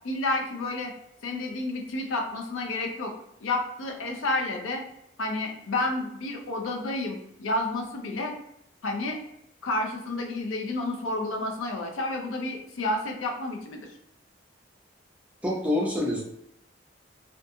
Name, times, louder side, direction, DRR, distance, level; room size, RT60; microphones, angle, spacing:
voice 1, 0.0-0.9 1.2-3.1 3.4-4.8 5.2-8.3 8.8-9.2 9.6-13.9, left 2 dB, 85° left, 3 dB, 0.5 m, -30 dB
voice 2, 15.4-16.3, left 1 dB, 5° right, -4 dB, 0.5 m, -26 dB
2.5 x 2.2 x 2.6 m, 0.76 s
head